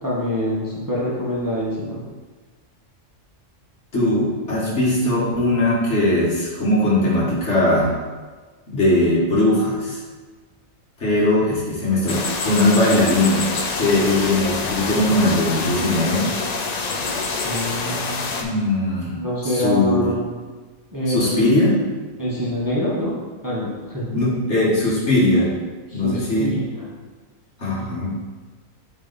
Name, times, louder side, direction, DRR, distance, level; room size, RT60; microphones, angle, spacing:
voice 1, 0.0-2.0 17.4-18.4 19.2-20.3 20.9-21.5 22.2-23.1 23.4-24.1 25.9-26.6 27.7-28.0, left 1 dB, 15° right, -7 dB, 1.2 m, -25 dB
voice 2, 3.9-7.9 8.7-10.0 11.0-13.5 13.7-16.3 18.4-20.1 21.1-21.8 24.1-25.5 25.9-26.6 27.6-28.2, left 1 dB, 60° left, -6 dB, 2.0 m, -20 dB
sound 1, 12.1-18.4, left 4 dB, 45° left, 0.6 m, -26 dB
7.9 x 3.3 x 4.1 m, 1.4 s
omnidirectional pair, 1.3 m